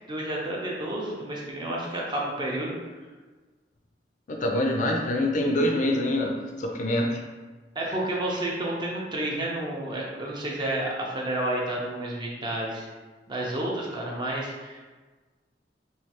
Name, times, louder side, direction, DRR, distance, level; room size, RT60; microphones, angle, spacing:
voice 1, 0.1-2.7 7.8-12.9 13.3-14.8, right 1 dB, 25° right, -3 dB, 0.5 m, -30 dB
voice 2, 4.3-6.3 6.6-7.2, left 1 dB, 45° left, 1 dB, 0.4 m, -25 dB
3.1 x 2.3 x 2.8 m, 1.3 s
head